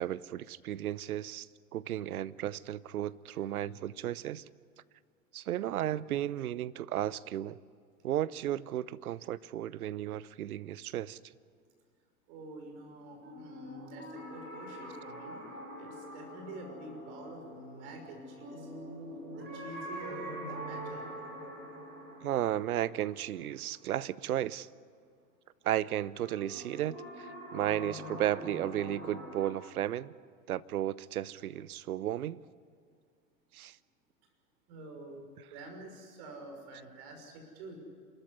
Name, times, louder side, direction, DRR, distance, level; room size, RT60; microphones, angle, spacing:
voice 1, 0.0-1.5 1.7-4.4 5.3-7.6 8.0-11.2 22.2-24.7 25.6-30.1 30.5-32.4 33.5-33.8, right 12 dB, 70° right, 19 dB, 0.8 m, -34 dB
voice 2, 12.3-15.4 15.8-18.7 19.3-21.0 34.7-35.2 35.5-37.8, right 2 dB, 45° right, 3 dB, 6.0 m, -47 dB
sound 1, 13.2-24.1 26.2-29.5, equal, 25° right, 6.5 m, -44 dB
28.0 x 13.5 x 9.8 m, 2.1 s
hypercardioid pair, 105°, 46 cm